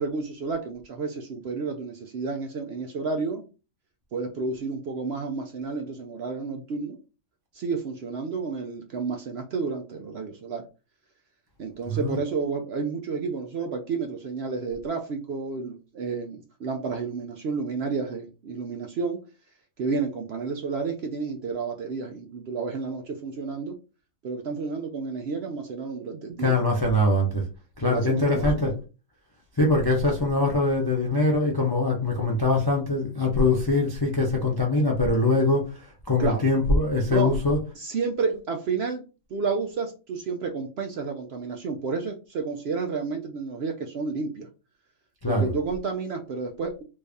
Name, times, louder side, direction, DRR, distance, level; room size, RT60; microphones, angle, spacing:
voice 1, 0.0-3.4 4.1-7.0 7.5-10.6 11.6-19.2 19.8-23.8 24.2-26.5 27.8-28.5 36.2-36.4 37.1-37.3 37.8-39.0 39.3-44.5 45.3-46.8, right 4 dB, 65° right, 0.7 m, -31 dB
voice 2, 11.9-12.2 26.4-27.4 27.8-28.7 29.6-37.6 45.2-45.5, left 2 dB, 35° left, 0.4 m, -23 dB
3.2 x 2.6 x 3.4 m
omnidirectional pair, 1.5 m